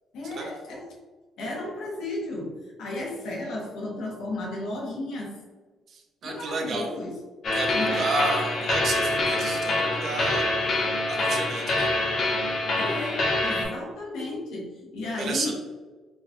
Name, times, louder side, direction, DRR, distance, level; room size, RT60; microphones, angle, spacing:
voice 1, 0.1-0.9 1.4-5.4 6.2-7.2 7.7-8.1 12.7-15.5, left 2 dB, 75° left, -2 dB, 1.0 m, -34 dB
voice 2, 5.9-6.9 7.5-10.5 11.1-11.9 15.2-15.5, right 3 dB, 40° right, 2 dB, 0.6 m, -31 dB
sound 1, 7.4-13.6, left 2 dB, 40° left, 0.7 m, -25 dB
4.5 x 2.3 x 2.9 m, 1.3 s
cardioid pair, 180°, 0 cm